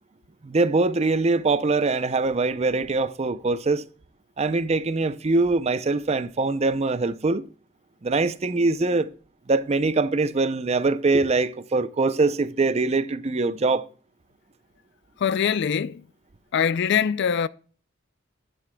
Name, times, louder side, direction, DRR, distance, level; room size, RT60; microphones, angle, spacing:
voice 1, 0.4-3.9 4.4-7.4 8.0-9.1 9.5-13.9, right 3 dB, 30° right, 0.5 m, -23 dB
voice 2, 15.2-16.0 16.5-17.5, left 7 dB, 55° left, 0.4 m, -23 dB
11.0 x 9.1 x 2.2 m
head